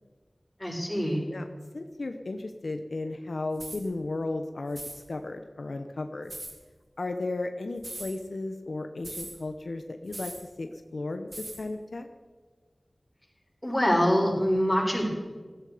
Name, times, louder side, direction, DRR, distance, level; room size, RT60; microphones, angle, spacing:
voice 1, 0.6-1.2 13.6-15.1, equal, 20° left, -3 dB, 6.7 m, -24 dB
voice 2, 1.7-6.3 7.0-12.1, left 2 dB, 85° left, 6 dB, 0.9 m, -35 dB
sound 1, 3.6-3.8 4.7-5.0 6.3-6.5 7.8-8.1 9.0-9.4 10.1-10.5 11.3-11.6, right 1 dB, 60° right, 3.8 m, -40 dB
17.5 x 15.0 x 5.1 m, 1.4 s
wide cardioid pair, 45°, 0 cm